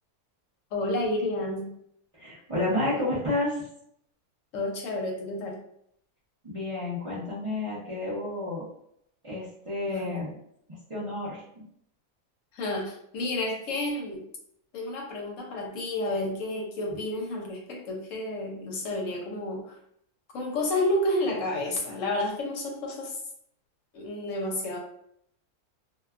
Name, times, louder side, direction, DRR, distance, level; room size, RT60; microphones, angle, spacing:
voice 1, 0.7-1.7 4.5-5.6 9.9-10.2 12.5-14.2 14.7-19.8 20.3-23.2 23.9-24.8, left 1 dB, 70° left, 0 dB, 0.9 m, -30 dB
voice 2, 2.1-3.6 6.4-8.6 9.2-10.3 10.9-11.6, left 2 dB, 35° right, -9 dB, 0.5 m, -30 dB
2.5 x 2.2 x 2.3 m, 0.72 s
omnidirectional pair, 1.5 m